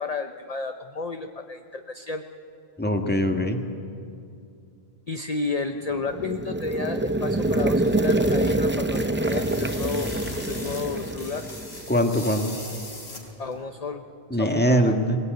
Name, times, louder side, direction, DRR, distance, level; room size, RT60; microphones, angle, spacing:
voice 1, 0.0-2.2 5.1-10.1 10.5-11.5 13.4-14.0 14.4-15.0, left 4 dB, 40° left, 6 dB, 0.9 m, -32 dB
voice 2, 2.8-3.6 11.9-12.5 14.3-15.2, equal, 10° left, 4 dB, 1.7 m, -22 dB
sound 1, 6.0-12.0, right 1 dB, 15° right, 0.5 m, -25 dB
sound 2, 7.4-13.6, left 2 dB, 80° left, 4.0 m, -40 dB
22.0 x 21.0 x 9.3 m, 2.5 s
omnidirectional pair, 1.1 m